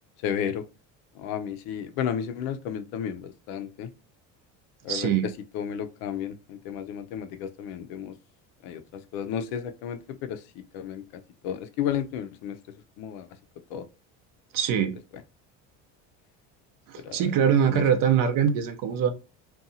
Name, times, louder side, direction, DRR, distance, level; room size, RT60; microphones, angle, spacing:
voice 1, 0.2-0.6 1.2-3.9 4.8-5.1 5.5-8.1 8.6-8.8 9.1-10.4 10.7-12.6 13.0-13.3 13.7-13.8 17.0-17.2 17.7-17.8, left 9 dB, 80° left, 0.5 m, -32 dB
voice 2, 4.9-5.2 14.5-14.9 16.9-19.1, right 8 dB, 65° right, 0.6 m, -23 dB
2.7 x 2.3 x 2.6 m
supercardioid pair, 110°, 36 cm